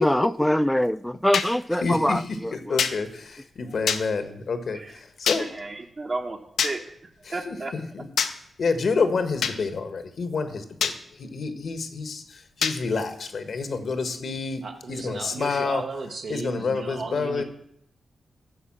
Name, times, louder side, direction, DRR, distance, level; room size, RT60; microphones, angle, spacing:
voice 1, 0.0-2.8, equal, 5° left, 0.4 m, -24 dB
sound 1, 1.3-1.5 2.8-3.0 3.9-4.0 5.3-5.4 6.6-6.7 8.2-8.3 9.4-9.6 10.8-11.0 12.6-12.8, left 7 dB, 90° left, 0.7 m, -24 dB
voice 2, 1.8-2.2 2.7-5.4 7.4-8.0 8.6-10.9 11.2-14.6 14.9-15.8 16.3-17.4, left 4 dB, 70° left, 1.3 m, -28 dB
voice 3, 5.4-7.7, right 2 dB, 45° right, 1.1 m, -34 dB
voice 4, 14.6-17.4, right 4 dB, 75° right, 1.0 m, -35 dB
11.0 x 5.0 x 7.5 m
cardioid pair, 60°, 0 cm